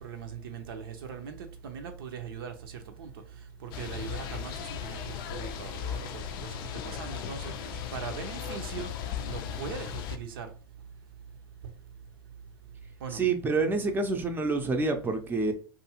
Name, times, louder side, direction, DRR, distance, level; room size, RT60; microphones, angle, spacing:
voice 1, 0.0-3.1 3.6-6.6 6.8-7.5 7.9-8.9 9.2-10.5 13.0-13.2, right 6 dB, 75° right, 0.6 m, -40 dB
sound 1, 3.7-10.2, left 8 dB, 65° left, 0.4 m, -37 dB
voice 2, 13.1-15.5, right 3 dB, 15° right, 0.5 m, -27 dB
2.6 x 2.4 x 2.8 m
hypercardioid pair, 90°, 12 cm